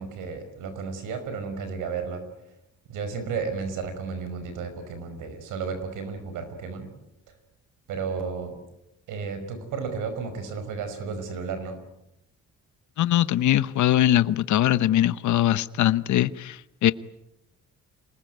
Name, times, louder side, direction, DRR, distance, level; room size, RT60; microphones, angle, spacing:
voice 1, 0.0-2.2 2.9-6.9 7.9-8.6 9.1-11.8, right 5 dB, 90° right, 10 dB, 5.3 m, -33 dB
voice 2, 13.0-16.9, left 12 dB, 75° left, 16 dB, 0.9 m, -21 dB
27.0 x 20.0 x 9.4 m, 0.89 s
cardioid pair, 90°, 30 cm